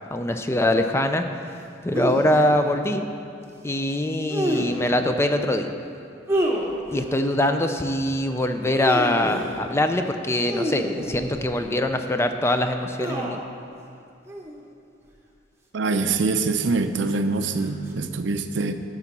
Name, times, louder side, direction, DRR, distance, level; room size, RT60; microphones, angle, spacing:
voice 1, 0.1-1.2 1.8-3.1 3.6-5.7 6.9-13.4, left 1 dB, 15° left, 7 dB, 0.4 m, -23 dB
sound 1, 1.9-2.4 4.3-4.9 6.3-7.1 8.6-9.6 10.4-11.6 13.0-13.5 14.3-14.6 15.8-16.4 17.6-17.9, equal, 15° right, 0.9 m, -28 dB
voice 2, 15.7-18.7, right 3 dB, 75° right, 9 dB, 0.5 m, -24 dB
12.0 x 4.0 x 7.2 m, 2.5 s
head